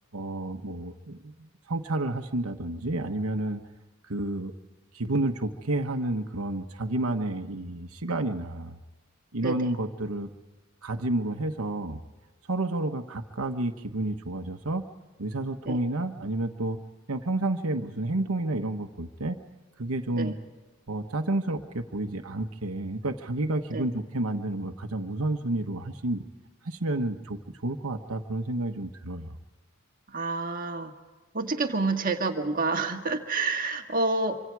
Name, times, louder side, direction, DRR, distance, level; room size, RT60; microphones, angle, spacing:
voice 1, 0.1-3.6 4.0-4.5 4.9-8.8 9.3-10.3 10.8-12.0 12.5-14.9 15.2-16.8 17.1-19.4 19.8-20.3 20.9-26.2 26.6-29.3, right 2 dB, 80° right, 4 dB, 1.2 m, -30 dB
voice 2, 30.1-30.9 31.3-34.3, right 3 dB, 40° right, 4 dB, 1.8 m, -28 dB
26.0 x 25.5 x 4.8 m, 1.2 s
head